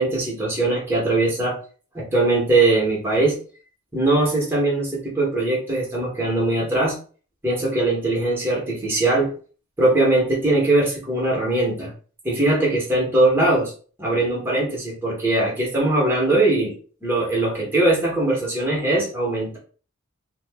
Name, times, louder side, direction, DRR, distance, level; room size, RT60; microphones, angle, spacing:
voice 1, 0.0-1.6 1.9-3.4 3.9-7.0 7.4-9.3 9.8-11.9 12.2-13.7 14.0-16.7 17.0-19.6, right 2 dB, 10° right, -4 dB, 0.9 m, -21 dB
2.4 x 2.0 x 3.4 m, 0.40 s
head